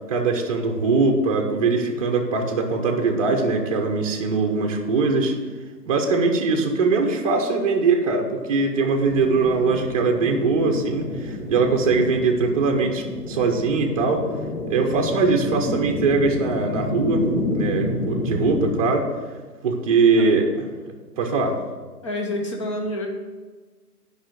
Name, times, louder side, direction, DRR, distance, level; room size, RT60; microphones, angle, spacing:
voice 1, 0.1-5.4 5.9-14.2 14.7-17.3 17.5-19.1 19.6-20.5 21.2-21.6, right 4 dB, 25° right, 2 dB, 0.8 m, -21 dB
sound 1, 9.0-18.7, left 1 dB, 50° left, 3.1 m, -29 dB
voice 2, 22.0-23.1, left 1 dB, 20° left, 2 dB, 0.7 m, -28 dB
9.2 x 5.5 x 6.7 m, 1.4 s
hypercardioid pair, 160°, 48 cm